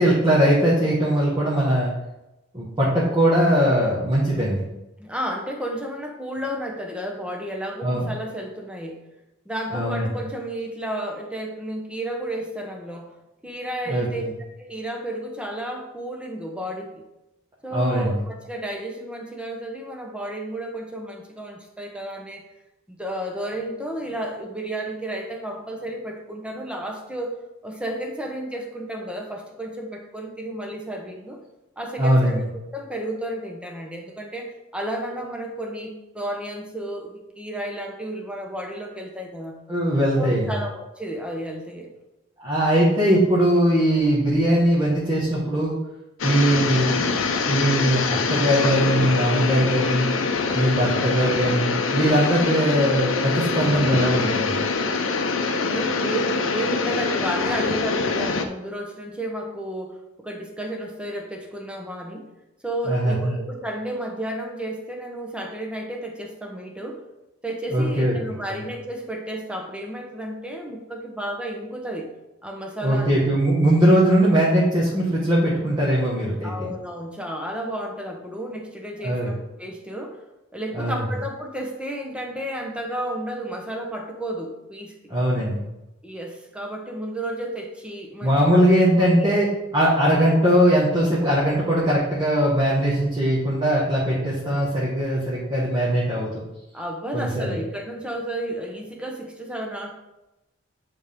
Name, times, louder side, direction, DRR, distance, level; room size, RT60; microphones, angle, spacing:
voice 1, 0.0-1.9 2.5-4.6 7.8-8.0 9.7-10.1 13.9-14.0 17.7-18.2 32.0-32.5 39.7-40.6 42.4-45.7 46.2-47.1 47.4-50.1 50.5-54.6 62.9-63.4 67.7-68.1 72.8-76.5 79.0-79.3 80.7-81.0 85.1-85.6 88.2-89.5 89.7-96.4 97.1-97.5, equal, 20° right, -8 dB, 1.5 m, -20 dB
voice 2, 5.0-9.0 9.4-13.1 13.4-14.2 14.6-17.0 17.6-22.4 22.9-27.4 27.6-31.4 31.8-39.6 40.2-41.9 52.2-52.3 55.6-62.3 62.6-67.0 67.4-72.1 72.4-73.2 76.4-80.2 80.5-85.0 86.0-88.4 89.0-89.3 96.7-99.9, right 1 dB, 5° right, 2 dB, 0.9 m, -32 dB
sound 1, 46.2-58.5, left 4 dB, 70° left, 0.6 m, -24 dB
9.2 x 3.8 x 3.6 m, 0.96 s
head